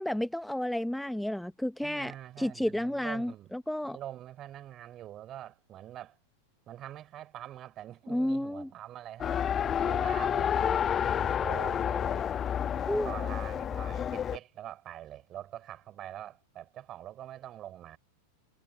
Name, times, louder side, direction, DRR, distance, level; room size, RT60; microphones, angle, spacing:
voice 1, 0.0-2.1 2.4-4.0 8.1-8.7 12.9-13.1, left 1 dB, ahead, 1.1 m, -31 dB
voice 2, 1.8-3.5 3.8-6.2 6.7-9.4 9.8-12.3 12.7-18.0, right 12 dB, 30° right, 3.9 m, -44 dB
Race car auto racing, 9.2-14.4, left 8 dB, 25° left, 1.3 m, -29 dB
figure-of-eight pair, 90°, 0 cm